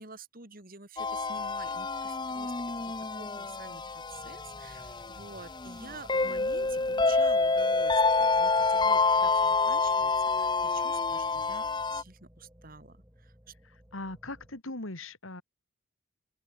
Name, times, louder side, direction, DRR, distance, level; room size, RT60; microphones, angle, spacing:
voice 1, 0.0-2.5 2.8-13.5, right 3 dB, 45° right, 3.6 m, -49 dB
sound 1, 1.0-12.0, left 4 dB, 20° left, 0.9 m, -28 dB
sound 2, 4.1-14.6, equal, 10° right, 5.6 m, -57 dB
voice 2, 13.6-15.4, left 2 dB, 70° left, 3.4 m, -40 dB
open air
head